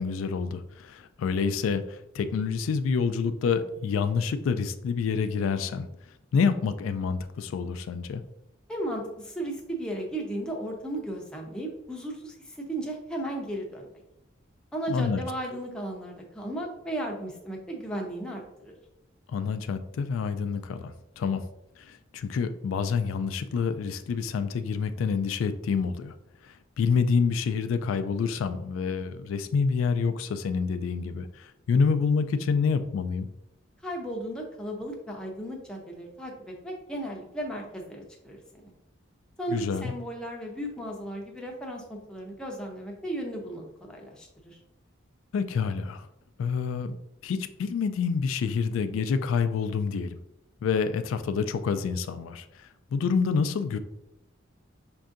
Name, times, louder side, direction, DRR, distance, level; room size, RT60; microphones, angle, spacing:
voice 1, 0.0-5.9 6.3-8.2 14.9-15.2 19.3-21.4 21.8-26.1 26.4-33.3 39.5-39.9 45.3-46.1 46.4-47.0 47.2-50.2 50.6-53.8, left 5 dB, 90° left, 11 dB, 0.3 m, -27 dB
voice 2, 8.7-13.9 14.7-18.7 33.8-38.7 39.4-44.6, right 1 dB, 5° left, -1 dB, 0.6 m, -35 dB
5.4 x 2.6 x 2.4 m, 0.85 s
head